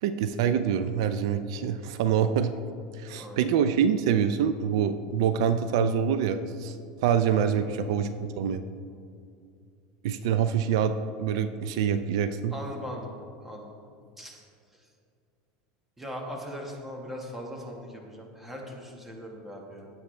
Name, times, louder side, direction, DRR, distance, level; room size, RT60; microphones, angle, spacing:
voice 1, 0.0-2.5 2.9-6.8 7.0-8.1 8.4-8.6 10.0-12.5, right 8 dB, 75° right, 11 dB, 0.5 m, -25 dB
voice 2, 7.4-8.1 12.5-13.1 13.4-13.7 14.2-14.4 14.7-14.8 16.0-19.9, equal, 10° right, 0 dB, 1.5 m, -40 dB
17.0 x 7.2 x 3.3 m, 2.3 s
supercardioid pair, 155°, 3 cm